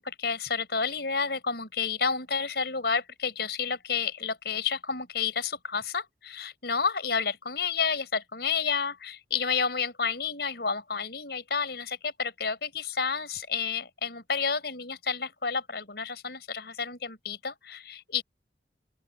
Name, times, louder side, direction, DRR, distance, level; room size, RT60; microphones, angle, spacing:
voice 1, 0.0-18.2, left 5 dB, 65° left, 5.6 m, -30 dB
open air
head